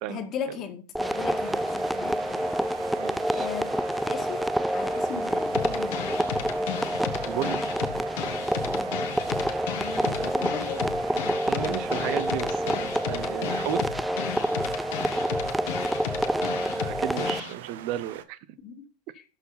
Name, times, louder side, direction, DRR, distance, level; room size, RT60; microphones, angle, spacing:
voice 1, 0.1-2.4 3.3-6.3 8.7-9.0 9.7-10.9 11.6-11.9 15.0-15.2 18.6-18.9 19.1-19.2, left 7 dB, 40° left, 2.0 m, -38 dB
sound 1, 1.0-17.4, equal, ahead, 0.3 m, -28 dB
sound 2, 1.0-18.2, right 10 dB, 80° right, 0.9 m, -44 dB
voice 2, 2.9-3.5 7.3-7.6 10.0-10.3 11.4-13.8 16.3-18.4, right 13 dB, 55° right, 0.7 m, -34 dB
sound 3, 5.5-17.5, left 11 dB, 70° left, 1.6 m, -34 dB
12.5 x 4.6 x 5.8 m
hypercardioid pair, 110°, 0 cm